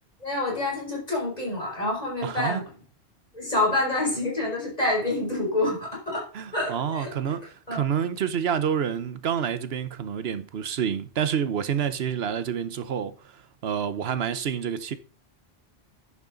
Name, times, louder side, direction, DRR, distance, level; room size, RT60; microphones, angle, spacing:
voice 1, 0.2-2.6 3.3-7.3 7.7-7.8, left 2 dB, 35° left, 5.2 m, -27 dB
voice 2, 2.2-2.6 6.3-13.1 13.6-14.9, right 8 dB, 70° right, 1.1 m, -28 dB
10.5 x 8.7 x 3.9 m
omnidirectional pair, 1.1 m